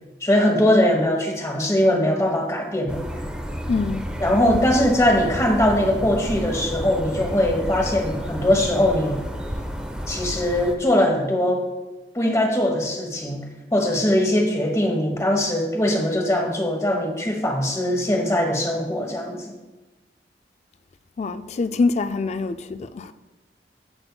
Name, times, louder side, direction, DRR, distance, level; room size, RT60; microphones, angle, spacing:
voice 1, 0.2-3.0 4.2-9.2 10.1-11.7 12.1-13.5 13.7-19.4, left 1 dB, 15° left, 1.1 m, -21 dB
sound 1, 2.9-10.7, equal, 5° right, 0.6 m, -31 dB
voice 2, 3.7-4.1 21.2-23.1, left 3 dB, 40° left, 0.3 m, -24 dB
15.0 x 5.4 x 2.2 m
head